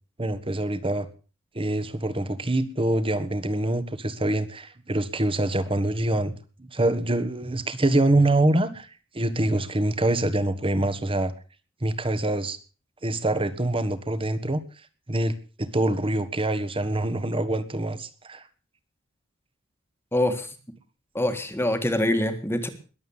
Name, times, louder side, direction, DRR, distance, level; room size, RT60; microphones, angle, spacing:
voice 1, 0.2-1.1 1.5-6.3 6.6-8.9 9.1-11.3 11.8-12.6 13.0-14.6 15.1-15.3 15.6-18.4, right 1 dB, 25° right, 12 dB, 1.5 m, -25 dB
voice 2, 20.1-20.5 21.2-22.7, left 1 dB, 10° left, 7 dB, 1.7 m, -24 dB
21.5 x 8.1 x 7.2 m, 0.38 s
head